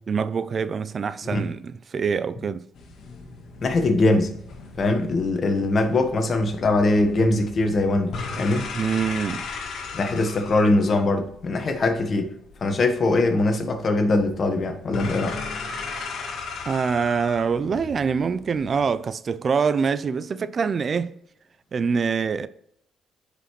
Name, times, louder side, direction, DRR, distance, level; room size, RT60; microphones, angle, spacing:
voice 1, 0.1-2.7 8.7-9.5 16.7-21.2 21.7-22.5, right 6 dB, 45° right, 0.4 m, -25 dB
sound 1, 2.7-18.9, left 4 dB, 65° left, 1.5 m, -37 dB
voice 2, 3.6-4.3 4.8-8.7 9.9-15.4, left 2 dB, 45° left, 1.3 m, -22 dB
10.0 x 5.1 x 3.1 m
cardioid pair, 90°, 0 cm